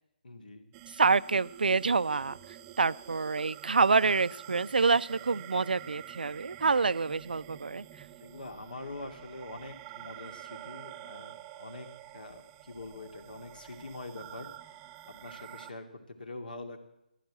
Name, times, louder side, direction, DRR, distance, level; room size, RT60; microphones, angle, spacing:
voice 1, 0.2-0.7 8.2-14.5 15.1-16.8, left 2 dB, 65° left, 7 dB, 2.4 m, -44 dB
sound 1, 0.7-15.7, right 13 dB, 20° right, 0.6 m, -48 dB
voice 2, 1.0-2.4 2.8-7.8, right 4 dB, 75° right, 17 dB, 0.5 m, -27 dB
14.0 x 12.0 x 7.6 m, 0.84 s
figure-of-eight pair, 145°, 5 cm